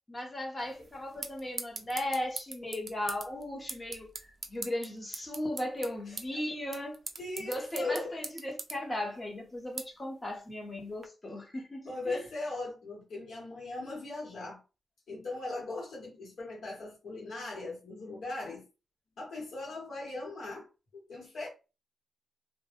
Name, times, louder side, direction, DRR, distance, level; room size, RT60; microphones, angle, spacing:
voice 1, 0.1-4.1 4.5-7.0 7.4-12.2, left 1 dB, 25° left, 0.8 m, -36 dB
sound 1, 0.6-11.1, right 4 dB, 45° right, 0.4 m, -44 dB
voice 2, 7.2-8.1 11.9-14.6 15.1-18.7 19.2-20.7 21.1-21.5, left 2 dB, 70° left, 0.9 m, -39 dB
2.1 x 2.0 x 2.8 m
wide cardioid pair, 120°, 0 cm